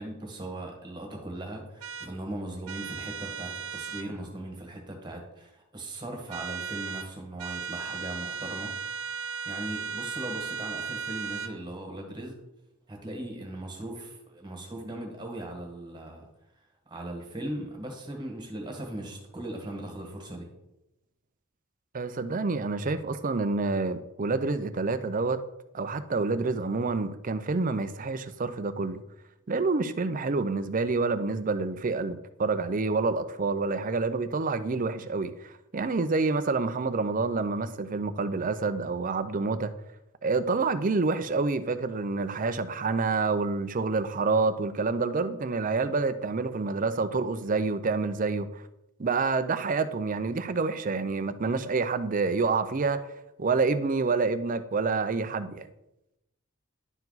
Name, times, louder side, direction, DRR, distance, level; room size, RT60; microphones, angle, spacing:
voice 1, 0.0-8.7 9.1-12.4 12.9-16.3 16.9-20.5, right 1 dB, 20° right, 1.6 m, -39 dB
sound 1, 1.8-2.1 2.7-4.1 6.3-7.1 7.4-11.5, right 5 dB, 85° right, 0.7 m, -36 dB
voice 2, 21.9-25.4 25.7-29.0 29.5-39.7 40.2-48.6 49.0-53.0 53.4-55.7, right 4 dB, 40° right, 0.5 m, -28 dB
11.0 x 4.6 x 4.0 m
head